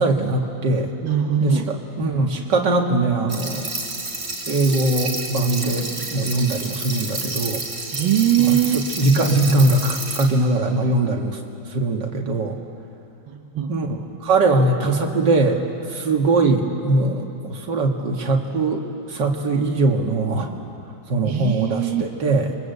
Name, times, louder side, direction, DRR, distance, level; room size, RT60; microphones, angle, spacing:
voice 1, 0.0-0.9 1.4-3.7 4.5-7.6 8.5-11.4 11.7-12.6 13.7-15.6 15.9-18.8 19.1-20.5 21.1-22.6, right 2 dB, 60° right, 2 dB, 2.6 m, -21 dB
voice 2, 1.0-1.7 7.9-8.8 13.3-13.7 21.2-22.0, right 11 dB, 80° right, 2 dB, 1.9 m, -21 dB
sound 1, 3.3-10.2, right 2 dB, 30° right, 4.3 m, -30 dB
29.0 x 23.5 x 8.2 m, 2.7 s
omnidirectional pair, 2.1 m